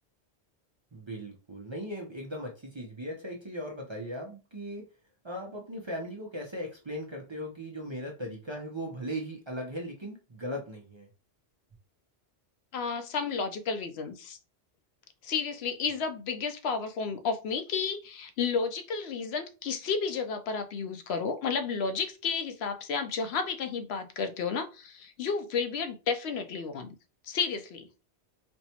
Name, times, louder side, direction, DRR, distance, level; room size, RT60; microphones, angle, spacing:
voice 1, 0.9-4.9 5.2-11.1, equal, 30° right, 0 dB, 0.6 m, -38 dB
voice 2, 12.7-14.4 15.2-26.9 27.2-27.9, left 5 dB, 70° left, 8 dB, 0.8 m, -32 dB
4.3 x 2.2 x 2.8 m, 0.32 s
omnidirectional pair, 1.1 m